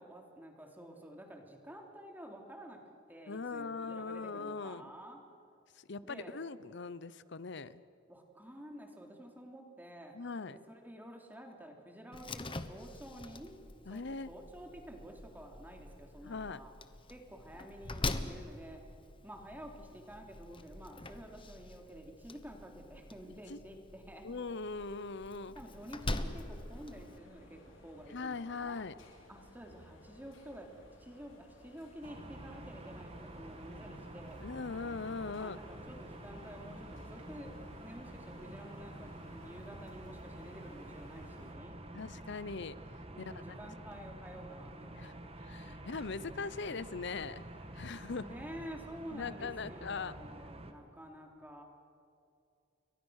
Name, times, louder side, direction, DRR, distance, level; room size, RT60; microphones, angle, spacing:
voice 1, 0.0-2.8 3.1-5.2 6.0-6.3 8.1-10.1 10.5-13.6 13.9-16.7 17.1-18.8 19.2-24.3 25.6-28.9 29.3-30.7 31.0-34.5 35.3-41.8 43.1-45.1 48.2-51.6, equal, 10° right, 2 dB, 3.4 m, -50 dB
voice 2, 3.3-4.9 5.8-7.8 10.1-10.6 13.9-14.3 16.2-16.6 23.5-23.6 24.2-25.6 28.1-28.9 34.4-35.6 41.9-42.8 45.0-45.1 45.4-47.4 47.7-48.3 49.1-50.1, left 4 dB, 65° left, 16 dB, 0.8 m, -40 dB
Slam, 12.1-27.2, left 2 dB, 25° left, 1.2 m, -44 dB
sound 1, 25.7-41.5, left 1 dB, 80° left, 4.8 m, -58 dB
sound 2, 32.0-50.7, right 1 dB, 30° right, 1.9 m, -49 dB
29.5 x 23.5 x 6.5 m, 2.5 s
head